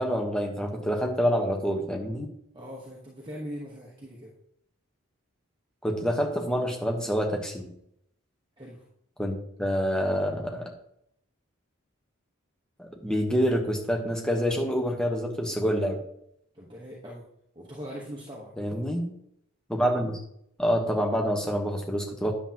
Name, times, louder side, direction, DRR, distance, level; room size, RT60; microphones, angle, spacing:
voice 1, 0.0-2.3 5.8-7.7 9.2-10.7 12.8-16.0 18.6-19.1 19.7-20.2 20.6-22.3, equal, 5° left, 1 dB, 1.0 m, -27 dB
voice 2, 2.5-4.3 8.6-8.9 16.5-17.3 17.5-18.5, equal, 20° right, -4 dB, 1.1 m, -41 dB
9.9 x 7.3 x 2.9 m, 0.74 s
head